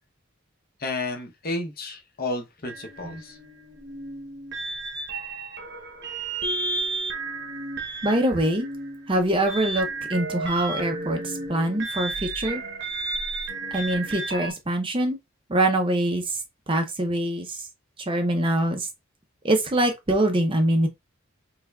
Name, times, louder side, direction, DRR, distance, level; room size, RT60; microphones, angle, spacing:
voice 1, 0.8-3.4, left 2 dB, 45° left, 0.8 m, -32 dB
sound 1, 2.6-14.5, right 3 dB, 55° right, 0.9 m, -33 dB
voice 2, 8.0-8.7 9.1-12.6 13.7-15.2 15.5-16.4 16.7-17.6 18.1-18.9 19.4-20.9, right 1 dB, 25° right, 0.6 m, -24 dB
3.5 x 3.2 x 2.2 m
head